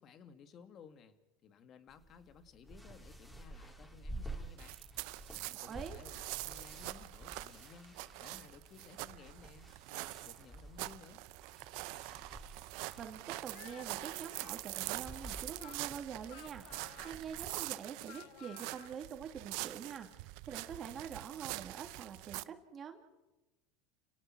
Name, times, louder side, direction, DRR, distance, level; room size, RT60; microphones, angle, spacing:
voice 1, 0.0-4.8 5.3-11.2, left 6 dB, 45° left, 9 dB, 2.2 m, -57 dB
sound 1, 1.9-17.5, right 1 dB, 5° left, 5.0 m, -51 dB
sound 2, 4.6-22.4, right 22 dB, 70° right, 0.7 m, -44 dB
voice 2, 5.7-6.0 13.0-23.1, right 7 dB, 35° right, 5 dB, 2.7 m, -46 dB
Speech, 13.5-19.0, left 18 dB, 70° left, 0.7 m, -56 dB
30.0 x 17.5 x 6.3 m, 1.0 s
supercardioid pair, 105°, 0 cm